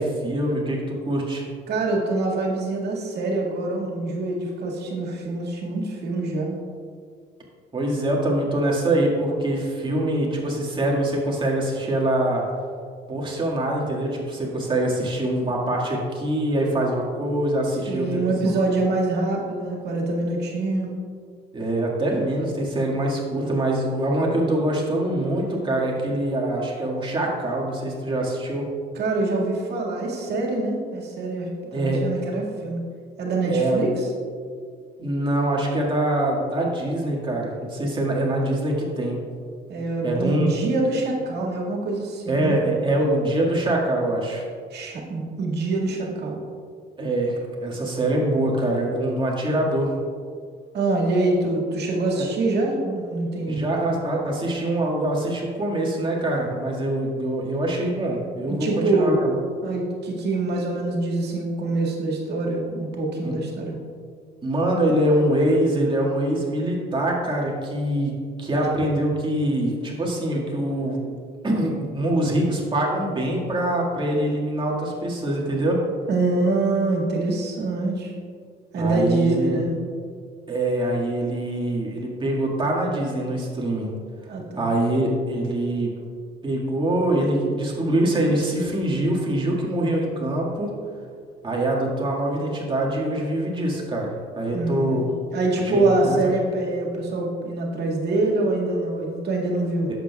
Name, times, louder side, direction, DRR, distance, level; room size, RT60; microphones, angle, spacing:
voice 1, 0.0-1.4 7.7-12.4 13.1-18.5 21.5-28.7 31.7-32.0 33.5-33.8 35.0-39.2 40.0-40.5 42.3-44.4 47.0-49.9 52.2-52.3 53.5-59.3 63.2-63.3 64.4-71.0 71.4-75.8 78.8-79.6 80.5-83.9 84.6-85.9 86.4-90.7 91.4-95.0 95.7-96.2, right 1 dB, 25° right, -3 dB, 1.8 m, -24 dB
voice 2, 1.7-6.6 17.9-20.9 29.0-32.8 33.2-34.1 39.7-42.6 44.7-46.4 50.7-53.7 58.5-59.2 59.6-63.8 68.7-68.8 76.1-78.1 78.7-79.8 84.3-84.8 94.5-99.9, right 2 dB, 65° right, -2 dB, 1.9 m, -25 dB
11.0 x 7.7 x 2.3 m, 2.2 s
cardioid pair, 105°, 18 cm